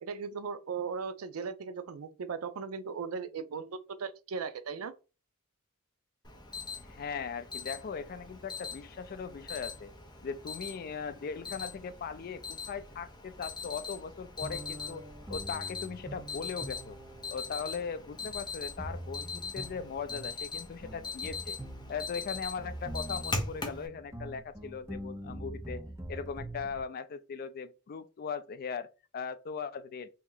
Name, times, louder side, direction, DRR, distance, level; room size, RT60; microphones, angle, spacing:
voice 1, 0.0-4.9, right 5 dB, 80° right, 0.4 m, -37 dB
Alarm, 6.2-23.9, left 4 dB, 20° left, 0.7 m, -41 dB
voice 2, 6.8-9.9 10.2-17.0 17.3-21.6 21.9-25.8 26.1-30.1, left 6 dB, 45° left, 0.3 m, -39 dB
sound 1, 14.4-26.8, right 1 dB, 15° right, 0.5 m, -44 dB
3.0 x 2.8 x 3.7 m
head